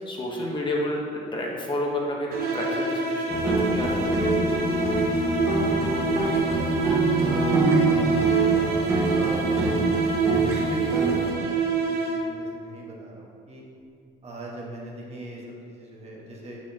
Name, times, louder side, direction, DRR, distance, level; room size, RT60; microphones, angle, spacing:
voice 1, 0.0-4.3, left 1 dB, 30° left, -2 dB, 1.0 m, -30 dB
sound 1, 2.3-12.5, right 5 dB, 65° right, 0.8 m, -25 dB
sound 2, 3.3-11.3, right 1 dB, 15° right, 1.2 m, -26 dB
voice 2, 5.4-8.6 9.1-13.6 14.2-16.6, right 1 dB, 40° right, -3 dB, 1.3 m, -39 dB
6.3 x 6.2 x 2.8 m, 2.4 s
cardioid pair, 110°, 17 cm